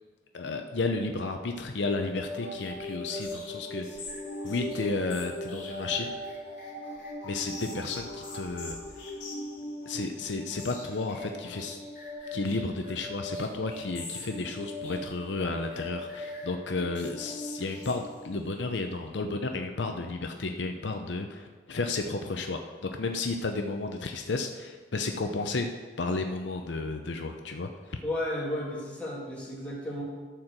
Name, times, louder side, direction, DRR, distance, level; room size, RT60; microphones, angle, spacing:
voice 1, 0.3-3.9 4.4-6.1 7.2-8.8 9.9-11.8 12.3-25.7 26.0-28.0, left 3 dB, 70° left, 5 dB, 0.6 m, -32 dB
sound 1, 2.1-18.5, left 1 dB, 50° left, 3.2 m, -39 dB
voice 2, 28.0-30.0, left 1 dB, 10° left, -6 dB, 2.5 m, -33 dB
12.5 x 4.5 x 6.6 m, 1.4 s
head